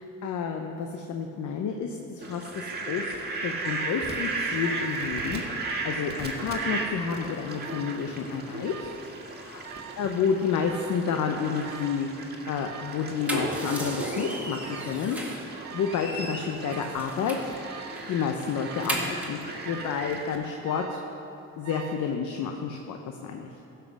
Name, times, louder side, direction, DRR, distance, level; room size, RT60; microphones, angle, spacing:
voice 1, 0.0-3.1 3.4-8.9 9.4-12.1 12.5-15.2 15.5-17.6 18.1-21.0 21.6-23.5, left 6 dB, 75° left, 3 dB, 0.8 m, -30 dB
Fowl, 2.2-20.4, right 3 dB, 35° right, 1.7 m, -35 dB
Alarm, 3.6-4.1 4.6-5.1 5.4-6.1 6.6-7.1 7.6-8.1 8.6-9.1 9.6-10.1 10.6-11.1 11.6-12.1 12.6-13.1 13.6-14.1 14.6-15.1 15.6-16.1 16.6-17.1 17.6-18.1 18.6-19.1 19.6-20.1 20.6-21.1 21.6-22.1, right 8 dB, 65° right, 0.8 m, -44 dB
sound 1, 13.0-15.5 15.8-17.6 18.0-18.1 18.4-19.4, right 1 dB, 5° right, 1.9 m, -36 dB
15.0 x 5.8 x 6.3 m, 2.9 s
cardioid pair, 90°, 30 cm